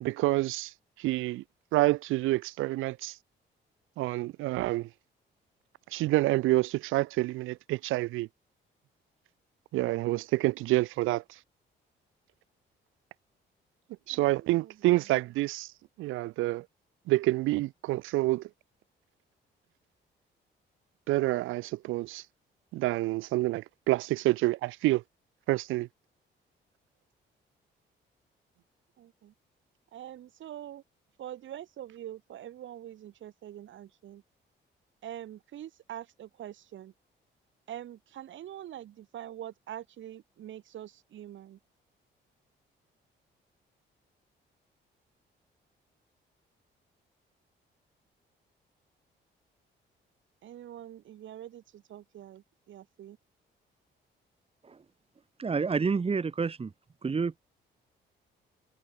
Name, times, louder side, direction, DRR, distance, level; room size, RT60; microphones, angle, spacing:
voice 1, 0.0-1.4 1.7-3.2 4.0-4.9 5.9-8.3 9.7-11.2 14.1-15.7 16.0-16.7 17.1-18.5 21.1-22.2 22.7-25.0 25.5-25.9, right 18 dB, 90° right, 0.6 m, -28 dB
voice 2, 14.1-15.1 29.0-29.3 29.9-30.8 31.2-34.2 35.0-36.9 37.7-41.6 50.4-53.2, right 11 dB, 75° right, 5.8 m, -44 dB
voice 3, 55.4-56.7 57.0-57.4, right 5 dB, 30° right, 1.6 m, -29 dB
cardioid pair, 90°, 20 cm